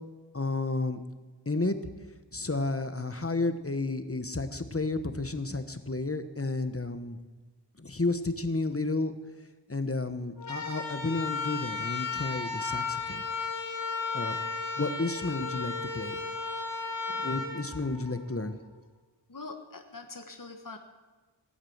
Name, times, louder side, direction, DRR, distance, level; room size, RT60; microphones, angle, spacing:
voice 1, 0.3-1.0 1.4-1.8 2.3-7.2 7.8-9.1 9.7-13.3 14.1-14.4 14.8-16.2 17.2-18.5, left 2 dB, 30° left, 10 dB, 1.2 m, -31 dB
sound 1, 10.4-18.5, left 4 dB, 90° left, 2.0 m, -34 dB
voice 2, 19.3-20.8, left 3 dB, 45° left, 5 dB, 1.4 m, -43 dB
18.0 x 8.7 x 8.0 m, 1.3 s
wide cardioid pair, 45°, 45 cm